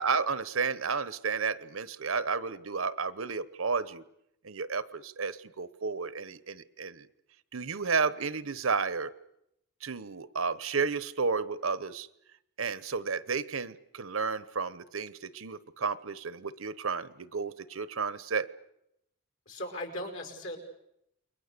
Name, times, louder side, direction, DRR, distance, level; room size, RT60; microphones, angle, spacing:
voice 1, 0.0-4.0 4.4-7.1 7.5-9.1 9.8-12.1 12.6-18.5, right 5 dB, 75° right, 16 dB, 1.0 m, -32 dB
voice 2, 19.5-20.6, left 1 dB, 65° left, 3 dB, 5.6 m, -38 dB
29.5 x 22.0 x 6.8 m, 0.79 s
head